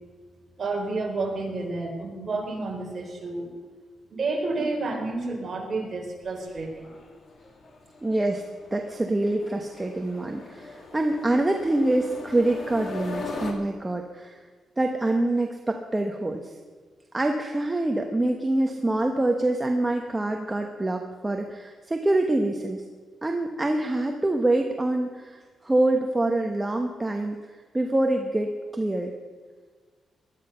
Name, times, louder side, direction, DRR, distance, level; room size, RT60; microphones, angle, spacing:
voice 1, 0.6-3.5 4.1-6.9, right 3 dB, 35° right, -1 dB, 4.1 m, -30 dB
sound 1, 6.2-13.5, left 3 dB, 50° left, 2.4 m, -40 dB
voice 2, 8.0-8.4 8.7-14.4 14.8-16.6 17.1-22.8 23.2-29.1, right 2 dB, 15° right, 3 dB, 1.0 m, -25 dB
19.5 x 12.0 x 5.6 m, 1.5 s
cardioid pair, 135°, 0 cm